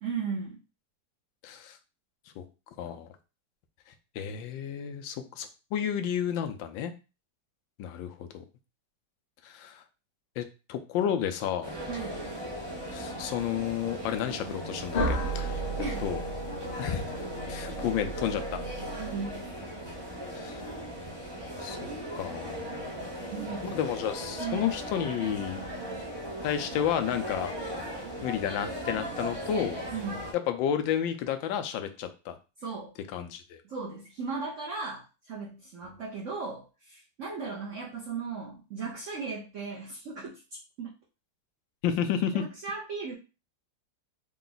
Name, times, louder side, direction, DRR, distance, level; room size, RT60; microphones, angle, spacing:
voice 1, 0.0-0.6 11.9-12.2 15.8-16.1 19.0-19.7 23.3-23.8 24.4-24.7 29.9-30.3 32.6-32.9 33.6-40.4 40.8-40.9 42.3-43.1, right 5 dB, 60° right, -3 dB, 0.8 m, -37 dB
voice 2, 1.4-1.8 2.4-2.5 2.8-3.1 4.1-6.9 7.8-8.4 9.4-9.8 10.4-11.7 12.9-15.5 16.0-16.2 16.8-17.1 17.5-18.6 20.3-20.6 21.6-21.8 22.1-22.7 23.6-25.6 26.4-27.5 28.2-29.8 30.5-32.4 33.1-33.6 41.8-42.4, left 9 dB, 85° left, 9 dB, 1.3 m, -31 dB
sound 1, 11.6-30.3, equal, 40° right, 0.3 m, -38 dB
sound 2, 14.9-19.6, right 1 dB, 60° left, 0.5 m, -34 dB
3.8 x 2.2 x 3.9 m, 0.30 s
omnidirectional pair, 2.0 m